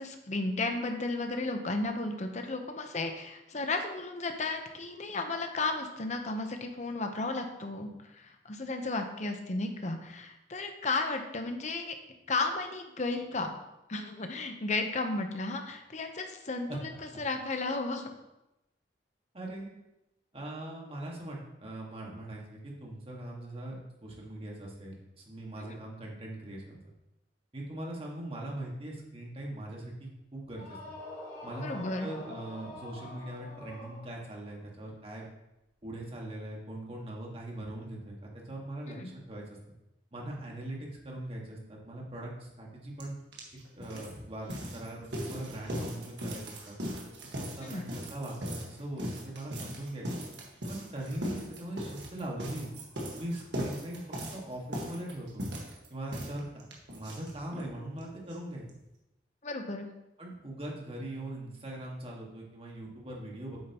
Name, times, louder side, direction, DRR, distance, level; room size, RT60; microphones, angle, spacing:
voice 1, 0.0-11.9 12.3-13.5 13.9-18.1 25.6-25.8 31.6-32.1 38.9-39.1 47.6-47.8 59.4-59.9, left 3 dB, 40° left, 5 dB, 0.9 m, -34 dB
voice 2, 19.3-19.7 20.3-23.7 24.0-26.8 27.5-30.9 31.4-31.7 32.0-35.3 35.8-39.0 39.3-39.4 40.1-43.2 43.8-46.8 47.3-50.1 50.7-52.7 53.2-54.0 54.3-55.5 55.9-56.6 56.9-58.6 60.2-63.6, right 1 dB, 30° right, -2 dB, 1.8 m, -41 dB
sound 1, 30.5-34.5, left 2 dB, 25° left, 2.5 m, -45 dB
sound 2, 43.0-43.1 43.3-57.7 58.0-58.1 58.3-58.4 58.7-58.8, equal, 75° right, 1.7 m, -39 dB
8.8 x 7.2 x 3.0 m, 0.92 s
head